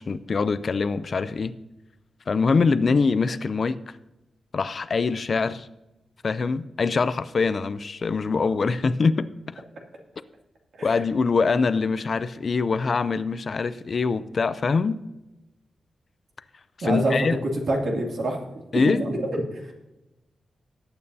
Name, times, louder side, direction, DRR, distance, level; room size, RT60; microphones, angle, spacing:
voice 1, 0.0-1.5 2.3-3.8 4.5-5.7 6.2-9.6 10.8-15.0 16.8-17.4 18.7-19.1, left 4 dB, 45° left, 14 dB, 0.4 m, -24 dB
voice 2, 16.8-17.4 17.7-18.4 18.7-19.7, right 1 dB, 65° right, 0 dB, 2.5 m, -26 dB
19.0 x 8.8 x 2.7 m, 0.98 s
wide cardioid pair, 130°, 0 cm